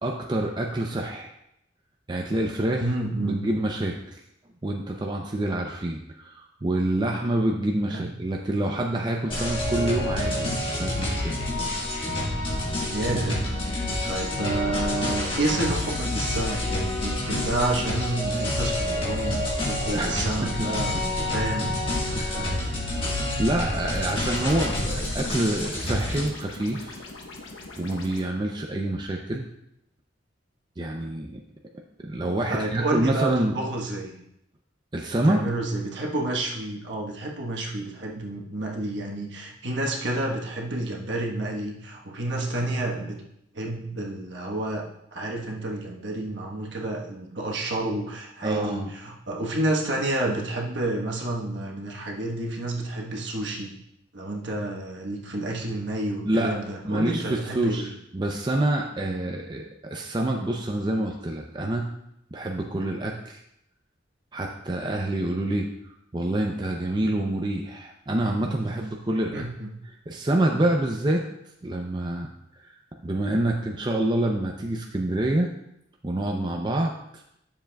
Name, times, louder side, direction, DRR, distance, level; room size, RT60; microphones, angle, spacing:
voice 1, 0.0-1.3 2.1-2.8 3.2-4.2 4.6-11.4 19.9-20.7 22.2-22.6 22.9-23.1 23.4-27.0 27.8-29.5 30.8-31.3 32.1-33.6 34.9-35.4 48.4-48.9 56.2-56.6 56.8-61.9 62.3-63.4 64.3-69.4 70.1-71.2 71.6-72.3 72.6-72.7 73.0-75.5 76.0-77.2, right 1 dB, 25° right, 1 dB, 0.5 m, -27 dB
voice 2, 2.8-3.4 7.9-8.1 12.9-13.5 14.1-21.7 22.1-22.6 32.5-34.1 35.1-43.2 43.5-44.8 45.1-53.7 54.1-57.9 69.3-69.7, right 2 dB, 65° right, -1 dB, 1.2 m, -30 dB
sound 1, 9.3-26.3, left 1 dB, 30° left, 1.5 m, -28 dB
sound 2, 23.8-28.2, left 2 dB, 90° left, 1.1 m, -42 dB
10.0 x 7.0 x 2.3 m, 0.78 s
head